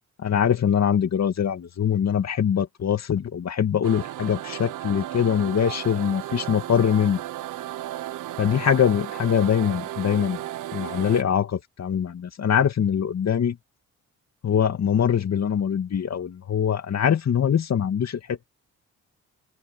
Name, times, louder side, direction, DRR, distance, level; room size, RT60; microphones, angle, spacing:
voice 1, 0.2-7.2 8.4-10.4 10.7-13.6 14.4-18.5, left 8 dB, 60° left, 2.5 m, -23 dB
sound 1, 3.8-11.2, right 14 dB, 85° right, 1.0 m, -34 dB
open air
cardioid pair, 80°, 30 cm